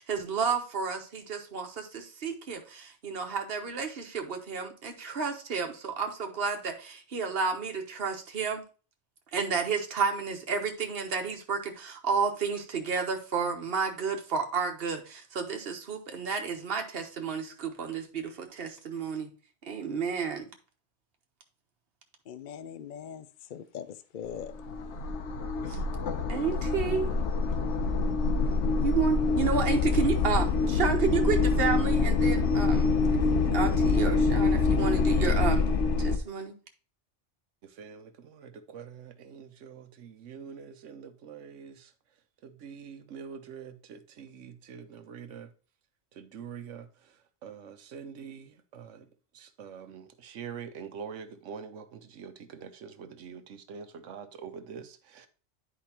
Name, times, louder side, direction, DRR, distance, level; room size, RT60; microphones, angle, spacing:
voice 1, 0.0-8.6 9.3-19.3 19.7-20.5 25.7-25.8 26.3-27.1 28.8-32.9 33.5-35.7 36.0-36.5, right 5 dB, 55° right, 1.3 m, -31 dB
voice 2, 22.3-24.5, left 8 dB, 55° left, 0.6 m, -41 dB
sound 1, 24.3-36.2, left 4 dB, 70° left, 1.1 m, -26 dB
voice 3, 37.8-41.9 42.4-45.5 46.2-46.9 47.4-48.5 48.7-49.0 49.3-55.3, right 7 dB, 85° right, 1.1 m, -44 dB
10.0 x 4.9 x 2.9 m
omnidirectional pair, 1.2 m